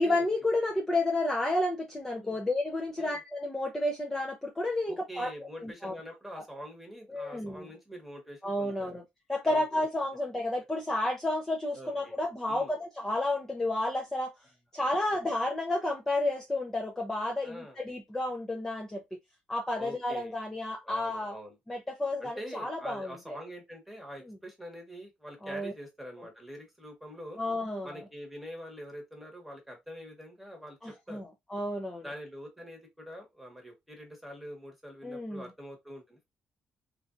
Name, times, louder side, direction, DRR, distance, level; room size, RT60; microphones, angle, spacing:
voice 1, 0.0-5.3 5.6-5.9 7.1-7.7 8.4-9.0 9.3-14.3 14.7-19.0 19.5-21.4 21.7-23.4 24.3-24.4 25.4-25.7 27.4-28.0 30.8-32.0 35.0-35.5, left 1 dB, 15° left, 0.6 m, -31 dB
voice 2, 4.9-8.9 9.4-9.6 11.7-12.2 12.5-12.7 14.8-15.0 17.4-17.8 19.8-20.3 20.8-21.6 22.2-27.4 27.8-30.8 31.1-31.2 32.0-36.2, equal, 5° right, 1.2 m, -45 dB
3.2 x 2.6 x 2.5 m
cardioid pair, 120°, 3 cm